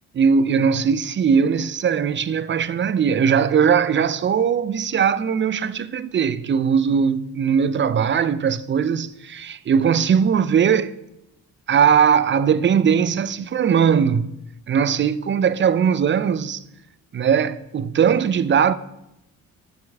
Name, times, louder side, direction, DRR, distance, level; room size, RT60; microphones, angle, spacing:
voice 1, 0.1-10.9 11.7-14.3 14.7-16.6 17.1-18.7, right 7 dB, 35° right, 0.4 m, -19 dB
9.2 x 5.2 x 3.5 m
cardioid pair, 70°, 35 cm